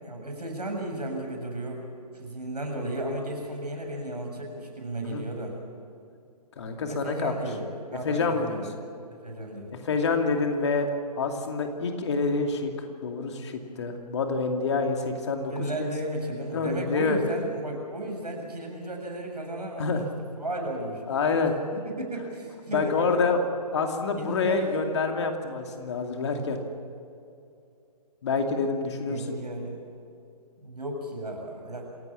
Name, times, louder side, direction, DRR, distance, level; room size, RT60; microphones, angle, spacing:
voice 1, 0.0-1.8 2.1-5.6 6.9-8.7 9.2-9.8 15.5-19.9 20.4-21.0 21.7-23.3 24.1-24.9 29.1-29.8 30.6-31.8, right 1 dB, 75° right, 2 dB, 7.2 m, -34 dB
voice 2, 6.6-7.3 8.0-8.6 9.7-10.9 11.2-15.5 15.8-15.9 16.5-17.2 19.8-20.0 21.1-21.6 22.7-23.4 23.7-26.6 28.2-29.4, left 4 dB, 45° left, 4 dB, 2.6 m, -27 dB
27.0 x 17.0 x 7.4 m, 2.5 s
figure-of-eight pair, 135°, 21 cm